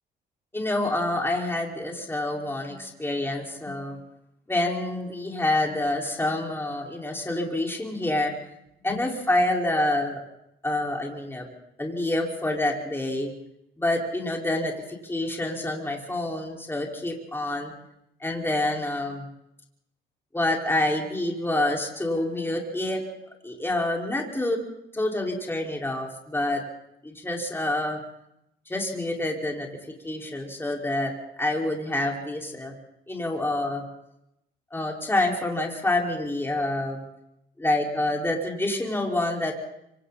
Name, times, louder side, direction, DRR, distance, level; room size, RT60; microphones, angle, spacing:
voice 1, 0.5-4.0 4.5-8.4 8.8-10.2 10.6-11.5 11.8-13.3 13.8-17.7 18.2-19.2 20.3-23.0 23.4-24.6 24.9-26.6 27.0-28.0 28.7-29.7 30.0-31.1 31.4-32.7 33.1-33.8 34.7-37.0 37.6-39.5, left 1 dB, 10° left, -1 dB, 5.0 m, -27 dB
26.5 x 25.5 x 4.2 m, 0.81 s
cardioid pair, 90°, 20 cm